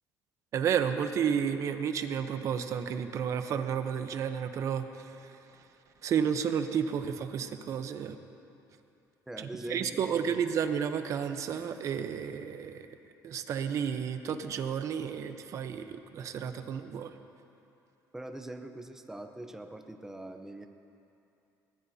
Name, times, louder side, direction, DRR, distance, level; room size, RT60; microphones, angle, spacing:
voice 1, 0.5-4.9 6.0-8.2 9.4-12.9 13.2-17.1, right 7 dB, 50° right, 8 dB, 0.8 m, -31 dB
voice 2, 9.3-10.4 18.1-20.7, right 1 dB, 5° right, 5 dB, 0.8 m, -42 dB
21.5 x 18.0 x 2.8 m, 2.7 s
cardioid pair, 140°, 7 cm